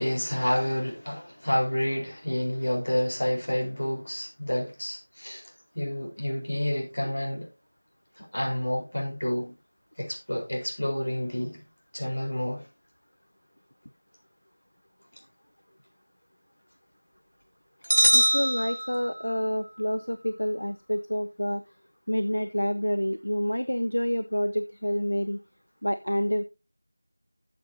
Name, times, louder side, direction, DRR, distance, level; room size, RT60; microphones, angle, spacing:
voice 1, 0.0-7.5 8.2-9.5 10.0-11.6 11.9-12.7 17.9-18.0, left 1 dB, 60° left, 4.2 m, -29 dB
sound 1, 17.9-19.5, equal, 85° right, 1.4 m, -23 dB
voice 2, 18.1-21.6 22.1-25.4 25.8-26.4, equal, 75° left, 0.7 m, -28 dB
12.5 x 7.4 x 2.8 m
figure-of-eight pair, 175°, 0 cm